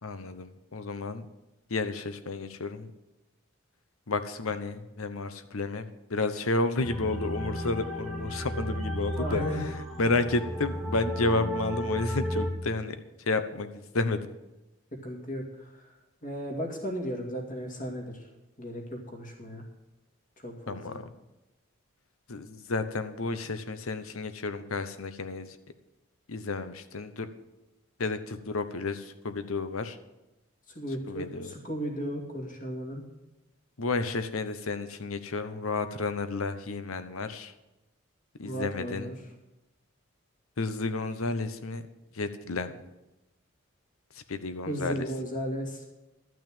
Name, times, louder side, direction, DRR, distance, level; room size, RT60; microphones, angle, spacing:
voice 1, 0.0-1.3 1.7-2.9 4.1-9.4 10.0-13.0 13.3-14.3 20.7-21.1 22.3-25.6 26.3-27.3 28.0-30.0 31.1-31.5 33.8-37.5 38.4-39.1 40.6-41.8 42.1-42.9 44.1-45.0, left 3 dB, 85° left, 11 dB, 0.9 m, -31 dB
sound 1, 6.8-12.5, equal, ahead, 1.2 m, -33 dB
voice 2, 9.2-9.6 15.0-15.9 16.2-18.3 18.6-19.6 20.4-21.0 30.7-33.0 38.4-39.1 44.7-45.8, equal, 40° left, 1 dB, 2.4 m, -35 dB
12.0 x 6.3 x 8.9 m, 1.0 s
head